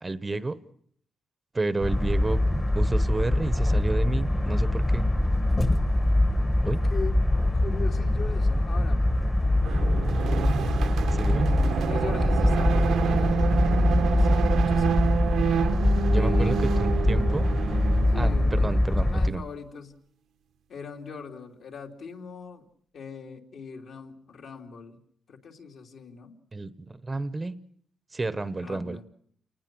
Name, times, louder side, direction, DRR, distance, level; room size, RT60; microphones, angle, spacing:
voice 1, 0.0-0.6 1.5-2.4 2.7-5.1 6.6-6.8 11.1-11.5 16.1-17.5 18.2-19.4 26.5-27.6 28.1-29.0, right 3 dB, 20° right, 14 dB, 0.9 m, -30 dB
sound 1, 1.8-19.3, left 1 dB, 15° left, 1.2 m, -23 dB
voice 2, 6.6-7.2 7.5-9.0 9.6-10.3 11.8-15.0 16.1-16.9 18.1-20.0 20.7-22.7 22.9-25.0 25.3-26.4 28.6-29.1, left 5 dB, 60° left, 2 dB, 3.1 m, -40 dB
sound 2, 9.6-18.8, right 7 dB, 80° right, 1.1 m, -28 dB
29.0 x 19.5 x 6.2 m, 0.62 s
cardioid pair, 140°, 0 cm